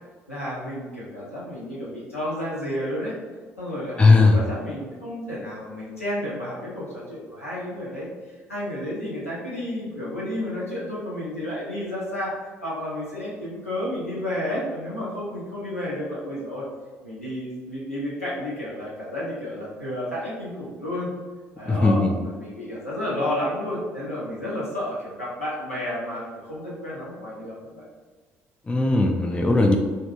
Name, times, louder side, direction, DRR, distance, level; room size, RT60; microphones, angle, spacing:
voice 1, 0.3-3.1 3.6-16.7 17.0-21.1 21.6-27.8, left 1 dB, 90° left, -7 dB, 0.6 m, -31 dB
voice 2, 4.0-4.4 21.7-22.1 28.7-29.8, left 3 dB, 15° left, 3 dB, 0.4 m, -17 dB
3.2 x 2.2 x 2.9 m, 1.4 s
figure-of-eight pair, 50°, 7 cm